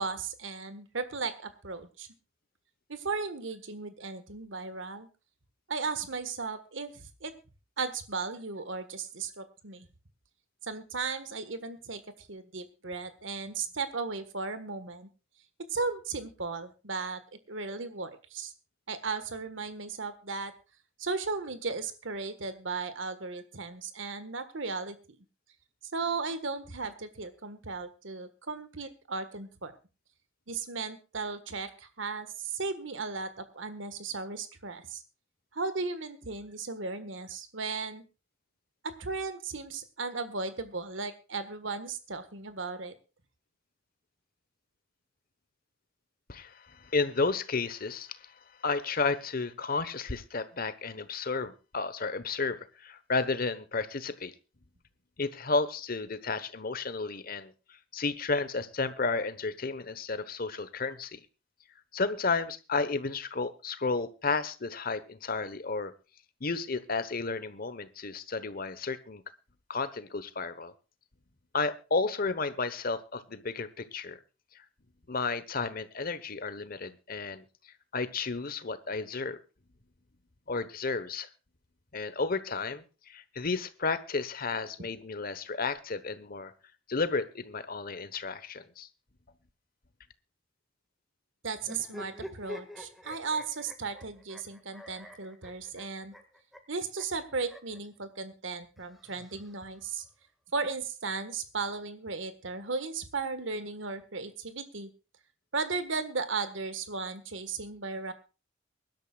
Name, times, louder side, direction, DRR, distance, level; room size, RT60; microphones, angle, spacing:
voice 1, 0.0-2.1 2.9-5.1 5.7-7.3 7.8-9.9 10.6-12.0 12.3-15.1 15.7-17.2 17.5-18.5 18.9-20.5 21.0-25.2 25.9-29.7 30.5-35.0 35.5-38.0 38.8-42.9 91.4-96.1 96.7-100.0 100.5-104.9 105.5-108.1, right 4 dB, 75° right, 11 dB, 1.6 m, -36 dB
voice 2, 46.3-48.3 48.6-54.3 55.2-57.5 57.9-61.2 61.9-65.9 66.4-69.2 69.7-70.7 71.5-74.2 74.5-74.6 75.1-77.4 77.9-79.4 80.5-81.3 81.9-86.5 86.9-88.9, left 4 dB, 50° left, 14 dB, 1.1 m, -32 dB
sound 1, 91.6-97.8 98.8-99.9, left 1 dB, ahead, 1.9 m, -47 dB
24.0 x 12.0 x 2.4 m, 0.31 s
head